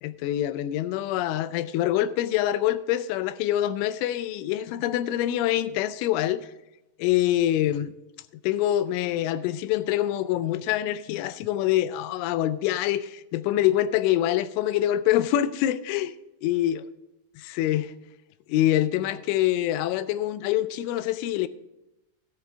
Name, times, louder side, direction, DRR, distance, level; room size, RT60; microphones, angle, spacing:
voice 1, 0.0-6.5 7.0-7.9 8.4-16.1 16.4-16.8 17.4-17.9 18.5-21.5, left 13 dB, 90° left, 3.1 m, -25 dB
13.0 x 10.0 x 3.5 m
omnidirectional pair, 5.4 m